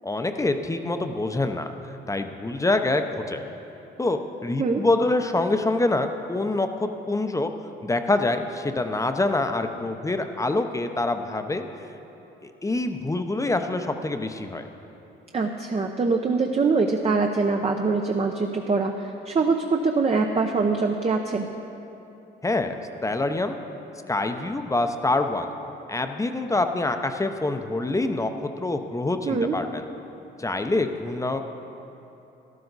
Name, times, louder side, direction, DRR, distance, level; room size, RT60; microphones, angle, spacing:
voice 1, 0.0-1.7 2.1-3.4 4.0-7.5 7.8-11.7 12.6-14.6 22.4-23.6 24.1-25.5 25.9-28.3 28.6-29.8 30.4-31.4, left 2 dB, 15° left, 7 dB, 0.7 m, -25 dB
voice 2, 15.3-18.9 19.2-21.5 29.3-29.5, right 4 dB, 30° right, 3 dB, 0.7 m, -23 dB
12.5 x 12.0 x 4.0 m, 2.9 s
cardioid pair, 90°, 20 cm